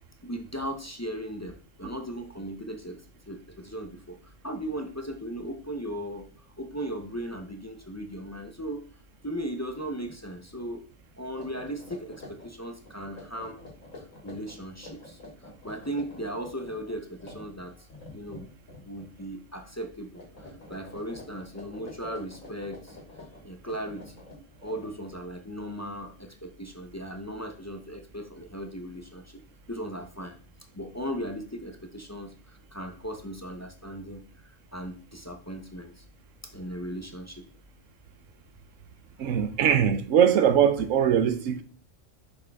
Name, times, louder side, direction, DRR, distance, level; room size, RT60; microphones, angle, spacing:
voice 1, 0.2-3.0 3.3-4.2 4.4-6.3 6.6-8.8 9.2-10.8 11.2-13.6 14.2-15.2 15.6-17.7 18.1-18.5 18.8-20.2 20.7-23.0 23.4-24.1 24.6-29.2 29.7-30.4 30.7-32.3 32.7-34.2 34.7-35.9 36.5-37.4 39.3-39.5, right 1 dB, 20° left, 0.4 m, -37 dB
sound 1, 9.8-10.2 10.5-10.7 11.2-19.3 19.5-19.9 20.1-25.2, left 2 dB, 85° left, 2.8 m, -48 dB
voice 2, 39.2-41.6, right 8 dB, 75° right, 1.1 m, -21 dB
6.5 x 5.5 x 3.5 m
omnidirectional pair, 1.4 m